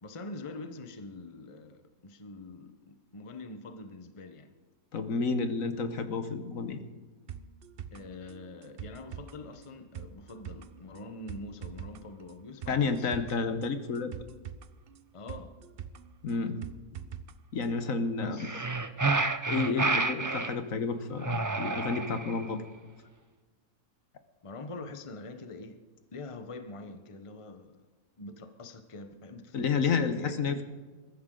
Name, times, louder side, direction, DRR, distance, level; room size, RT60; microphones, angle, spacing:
voice 1, 0.0-4.5 7.9-13.1 15.1-15.6 18.2-18.7 19.7-20.0 24.4-25.8 26.1-27.8 28.2-30.6, left 2 dB, 25° left, 8 dB, 1.0 m, -44 dB
voice 2, 4.9-6.8 12.7-14.1 16.2-16.6 17.5-18.5 19.5-22.6 29.5-30.6, left 4 dB, 70° left, 9 dB, 1.5 m, -30 dB
sound 1, 7.3-17.3 17.6-17.7, right 8 dB, 50° right, 0.8 m, -45 dB
sound 2, 18.4-20.6 21.2-22.5, right 3 dB, 25° right, 0.4 m, -29 dB
22.0 x 14.0 x 3.9 m, 1.3 s
omnidirectional pair, 1.5 m